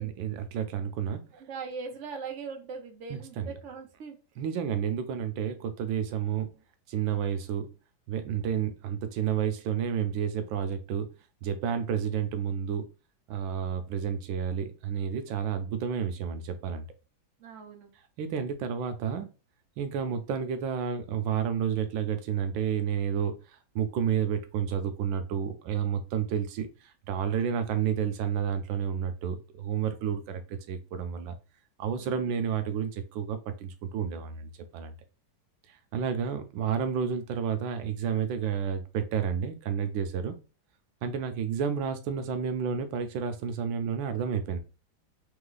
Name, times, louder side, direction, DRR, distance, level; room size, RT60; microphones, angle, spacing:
voice 1, 0.0-1.2 3.1-3.5 4.4-6.5 6.9-7.7 8.1-11.1 11.4-12.9 13.3-16.8 18.2-19.3 19.8-23.3 23.7-26.7 27.1-31.3 31.8-34.9 35.9-40.3 41.0-44.6, right 8 dB, 85° right, 9 dB, 1.3 m, -30 dB
voice 2, 1.3-4.2 17.4-17.9 31.9-32.4, right 5 dB, 45° right, 3 dB, 1.1 m, -41 dB
3.6 x 3.0 x 3.9 m, 0.32 s
omnidirectional pair, 2.0 m